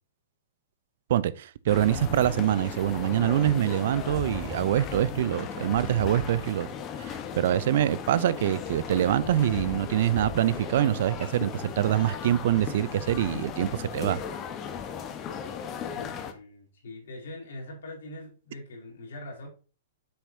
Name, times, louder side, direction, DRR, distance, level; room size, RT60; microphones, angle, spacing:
voice 1, 1.1-6.7 7.0-14.2, right 12 dB, 60° right, 0.5 m, -25 dB
sound 1, 1.7-16.3, left 7 dB, 30° left, 1.1 m, -36 dB
voice 2, 15.9-19.5, left 1 dB, 70° left, 4.0 m, -42 dB
8.0 x 6.1 x 2.8 m
hypercardioid pair, 115°, 0 cm